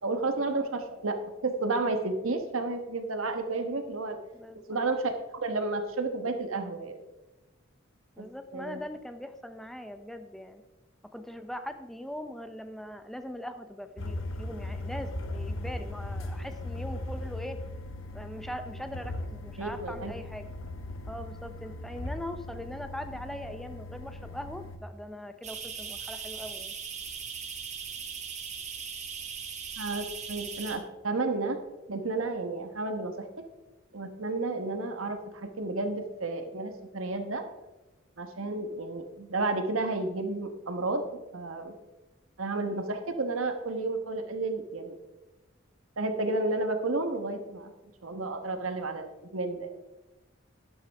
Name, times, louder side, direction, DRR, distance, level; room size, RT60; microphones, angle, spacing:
voice 1, 0.0-4.2 4.7-5.1 5.4-7.0 8.2-8.8 19.6-20.1 29.8-31.6 31.9-33.4 33.9-37.4 38.2-41.0 41.3-41.7 42.4-45.0 46.0-47.7 48.0-49.7, right 3 dB, 90° right, 7 dB, 1.3 m, -31 dB
voice 2, 4.3-4.8 8.2-10.6 11.1-17.6 18.1-20.5 21.1-26.7, left 1 dB, ahead, 8 dB, 0.6 m, -41 dB
sound 1, 14.0-24.8, left 1 dB, 75° left, 1.0 m, -38 dB
sound 2, 25.4-30.8, right 6 dB, 35° right, 1.5 m, -39 dB
12.0 x 10.0 x 3.5 m, 1.1 s
head